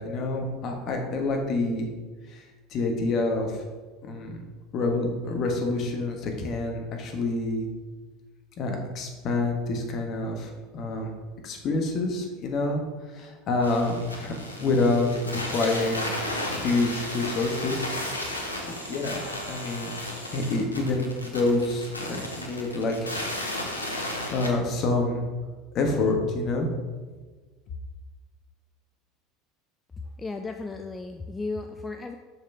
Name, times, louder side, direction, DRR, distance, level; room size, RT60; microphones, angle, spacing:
voice 1, 0.0-1.9 2.3-2.4 2.7-3.6 4.0-4.4 4.7-7.7 8.6-11.1 11.4-12.8 13.1-14.3 14.6-16.1 16.4-17.9 18.2-19.9 20.3-23.1 24.0-25.2 25.7-26.7, left 2 dB, 45° left, 2 dB, 1.3 m, -27 dB
sound 1, 13.6-24.5, left 1 dB, 90° left, 0.9 m, -34 dB
voice 2, 30.2-32.2, left 3 dB, 15° left, 6 dB, 0.4 m, -34 dB
6.4 x 5.8 x 3.5 m, 1.4 s
figure-of-eight pair, 75°, 0 cm